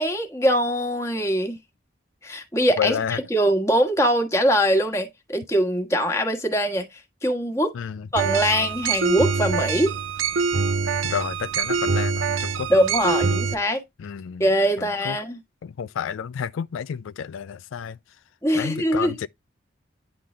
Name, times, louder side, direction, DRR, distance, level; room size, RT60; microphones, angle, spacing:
voice 1, 0.0-1.6 2.2-7.7 8.1-10.0 12.7-13.8 14.4-15.4 18.4-19.1, equal, 15° left, 1.4 m, -22 dB
voice 2, 2.8-3.2 7.7-8.1 11.0-12.7 13.1-13.2 14.0-14.5 14.8-15.2 15.6-18.0 18.5-19.3, left 7 dB, 85° left, 0.4 m, -30 dB
sound 1, 8.2-13.5, right 5 dB, 90° right, 0.8 m, -24 dB
10.0 x 3.8 x 3.2 m
head